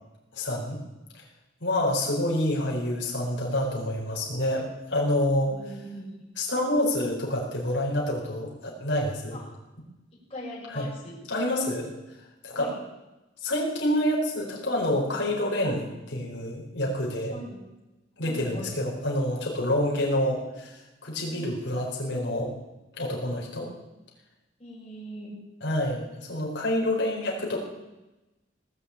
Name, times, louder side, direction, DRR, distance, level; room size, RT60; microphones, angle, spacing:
voice 1, 0.3-0.8 1.1-1.2 1.6-5.5 6.4-9.4 10.7-10.8 11.3-11.9 12.4-12.7 13.4-17.3 18.2-22.5 23.0-23.7 25.6-27.6, left 1 dB, 70° left, -2 dB, 4.7 m, -27 dB
voice 2, 5.5-6.2 9.3-9.5 10.3-11.2 12.5-12.8 17.3-17.6 18.2-18.7 21.3-21.4 24.6-25.4, equal, 30° left, -5 dB, 5.8 m, -40 dB
18.5 x 7.3 x 8.5 m, 1.0 s
head